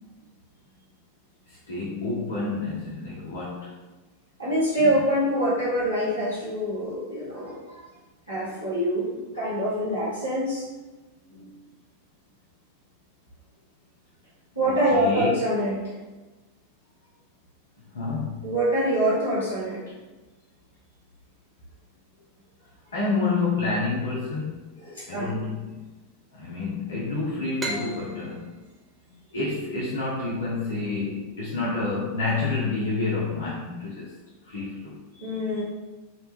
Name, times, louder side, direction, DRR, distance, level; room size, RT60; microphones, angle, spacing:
voice 1, 1.5-3.8 4.8-5.0 11.3-11.5 14.9-15.3 17.9-18.4 22.9-24.7 25.1-25.8 26.3-28.5 29.3-34.1 34.5-35.0, left 3 dB, 60° left, -5 dB, 0.5 m, -29 dB
voice 2, 4.4-7.8 8.3-10.7 14.6-15.9 18.4-19.8 24.8-25.3 35.1-35.6, equal, 80° right, -9 dB, 0.8 m, -25 dB
sound 1, 27.6-31.0, right 1 dB, 20° right, 0.5 m, -37 dB
2.7 x 2.2 x 2.9 m, 1.2 s
figure-of-eight pair, 90°, 0 cm